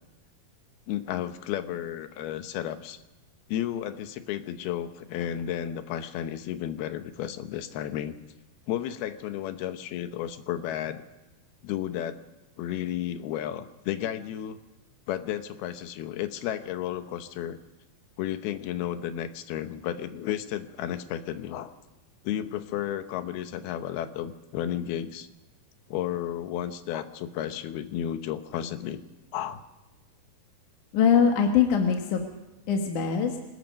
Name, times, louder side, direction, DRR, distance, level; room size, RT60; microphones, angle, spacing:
voice 1, 0.9-3.0 3.5-8.2 8.7-11.0 11.6-12.2 12.6-14.6 15.1-17.6 18.2-21.7 22.2-25.3 25.9-29.0 29.3-29.6, left 11 dB, 85° left, 10 dB, 2.9 m, -33 dB
voice 2, 30.9-32.2 32.7-33.4, left 7 dB, 60° left, 3 dB, 2.6 m, -22 dB
26.0 x 20.0 x 5.3 m, 1.0 s
omnidirectional pair, 4.3 m